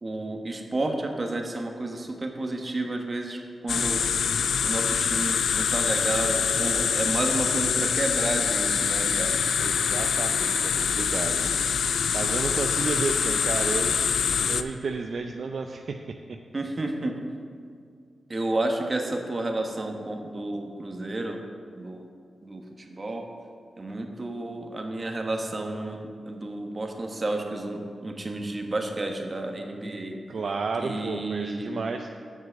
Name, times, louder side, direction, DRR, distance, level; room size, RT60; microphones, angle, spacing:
voice 1, 0.0-4.0 4.6-9.4 11.4-11.5 16.5-17.2 18.3-21.4 21.8-22.1 22.4-23.3 23.8-30.2 30.8-31.7, right 2 dB, 40° right, 3 dB, 1.3 m, -31 dB
sound 1, 3.7-14.6, left 7 dB, 85° left, 0.3 m, -25 dB
voice 2, 9.6-11.4 12.1-16.4 30.3-32.1, right 4 dB, 65° right, 4 dB, 0.4 m, -32 dB
7.6 x 6.2 x 7.4 m, 2.2 s
cardioid pair, 55°, 0 cm